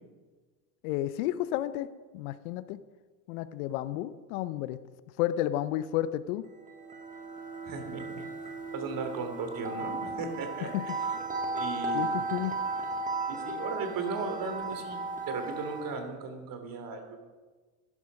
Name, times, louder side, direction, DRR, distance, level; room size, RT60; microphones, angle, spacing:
voice 1, 0.8-1.9 2.1-2.8 3.3-4.8 5.2-6.5 10.6-10.8 11.9-12.5, left 13 dB, 65° left, 15 dB, 0.7 m, -31 dB
sound 1, 6.6-16.1, right 3 dB, 15° right, 1.8 m, -35 dB
voice 2, 7.6-8.2 8.7-11.1 11.5-12.2 13.3-17.2, right 4 dB, 45° right, 6 dB, 2.8 m, -36 dB
12.0 x 11.0 x 5.2 m, 1.3 s
hypercardioid pair, 85°, 45 cm